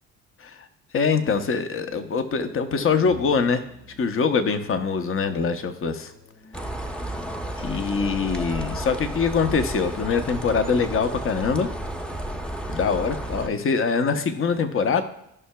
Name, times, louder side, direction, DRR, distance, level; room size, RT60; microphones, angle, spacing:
voice 1, 0.9-3.6 4.0-6.1 7.6-11.7 12.7-15.0, left 5 dB, 45° left, 8 dB, 0.9 m, -23 dB
sound 1, 1.7-10.4, left 3 dB, 85° left, 2.7 m, -45 dB
sound 2, 6.5-13.5, right 1 dB, 5° left, 0.7 m, -32 dB
14.5 x 5.6 x 2.3 m, 0.79 s
cardioid pair, 90°, 30 cm